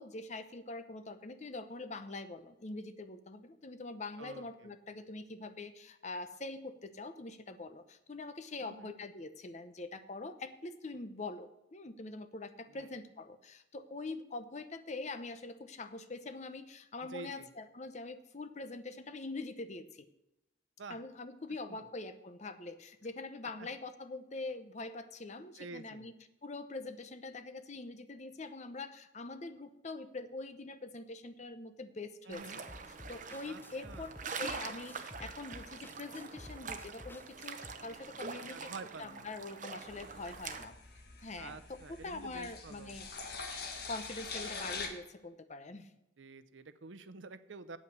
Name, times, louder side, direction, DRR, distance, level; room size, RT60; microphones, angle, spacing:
voice 1, 0.0-20.1 20.9-26.1 26.4-32.7 33.1-34.1 34.4-38.7 39.0-40.7 41.2-43.1 43.9-45.9, left 3 dB, 40° left, 10 dB, 0.8 m, -44 dB
voice 2, 4.2-4.7 8.6-9.0 12.7-12.9 17.1-17.5 20.8-21.0 21.7-21.9 23.6-23.7 25.5-26.1 32.3-32.6 33.4-34.2 38.5-39.3 41.4-43.0 46.2-47.8, right 3 dB, 85° right, 14 dB, 0.7 m, -49 dB
sound 1, 32.3-40.7, right 5 dB, 45° right, 0.9 m, -45 dB
sound 2, 32.7-37.7, left 1 dB, 10° left, 0.4 m, -52 dB
sound 3, 39.9-44.9, left 4 dB, 55° left, 1.7 m, -44 dB
8.5 x 8.2 x 6.7 m, 0.89 s
head